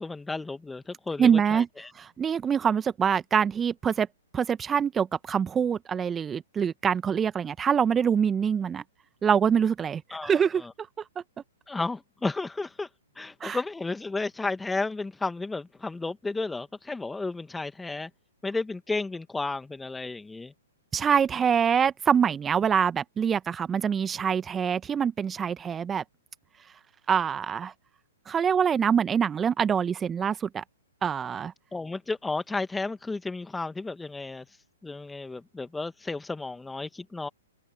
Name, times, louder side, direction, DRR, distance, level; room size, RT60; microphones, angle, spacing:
voice 1, 0.0-1.9 10.1-10.7 11.7-12.9 13.1-18.1 18.4-20.5 31.7-37.3, left 3 dB, 5° left, 1.3 m, -33 dB
voice 2, 1.2-1.7 2.0-4.1 4.3-8.8 9.2-10.6 13.4-13.6 20.9-26.0 27.1-27.7 28.3-30.6 31.0-31.5, right 7 dB, 15° right, 1.3 m, -25 dB
open air
figure-of-eight pair, 120°, 0 cm